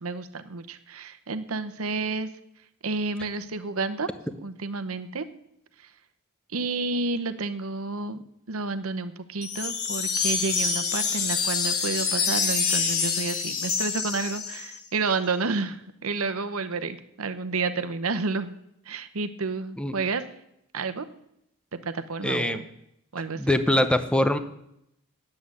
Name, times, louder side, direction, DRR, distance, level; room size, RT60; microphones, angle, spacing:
voice 1, 0.0-2.3 2.8-4.1 4.4-5.2 6.5-18.5 18.9-20.2 20.7-21.0 21.7-22.6 23.1-23.4, right 3 dB, 70° right, 11 dB, 0.9 m, -30 dB
sound 1, 9.4-14.8, left 5 dB, 85° left, 1.7 m, -26 dB
voice 2, 22.2-22.6 23.4-24.4, left 1 dB, 5° left, 10 dB, 0.7 m, -23 dB
9.8 x 7.7 x 8.4 m, 0.79 s
head